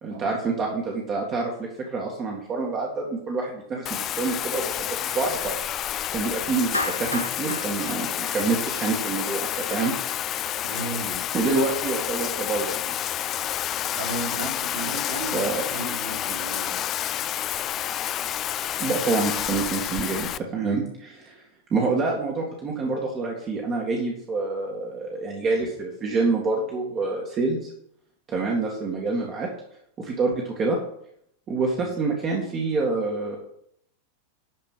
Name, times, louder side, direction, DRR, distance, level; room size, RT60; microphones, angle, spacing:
voice 1, 0.0-5.5 6.1-9.9 11.3-12.8 15.3-15.6 18.8-21.4 21.7-27.7 28.3-29.5 30.0-30.8 31.5-33.4, right 3 dB, 30° right, -1 dB, 2.1 m, -27 dB
Bathtub (filling or washing), 3.8-20.4, left 11 dB, 30° left, 0.4 m, -29 dB
Clapping, 6.7-9.0, left 2 dB, 85° left, 0.9 m, -32 dB
voice 2, 10.6-11.3 14.0-16.8 31.8-31.9, right 3 dB, 55° right, -3 dB, 4.1 m, -35 dB
12.0 x 5.1 x 7.5 m, 0.70 s
figure-of-eight pair, 90°, 0 cm